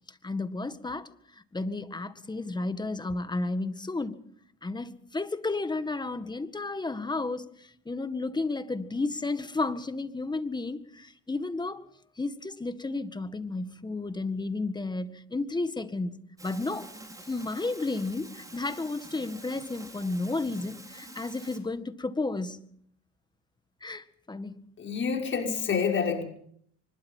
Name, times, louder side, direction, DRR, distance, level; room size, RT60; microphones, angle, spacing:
voice 1, 0.1-4.2 4.6-11.8 12.2-16.9 17.3-22.6 23.8-24.6, left 3 dB, 15° left, 1.8 m, -32 dB
sound 1, 16.4-21.6, right 2 dB, 10° right, 5.6 m, -47 dB
voice 2, 24.8-26.2, left 6 dB, 35° left, 6.0 m, -28 dB
24.5 x 21.5 x 5.7 m
supercardioid pair, 95°, 32 cm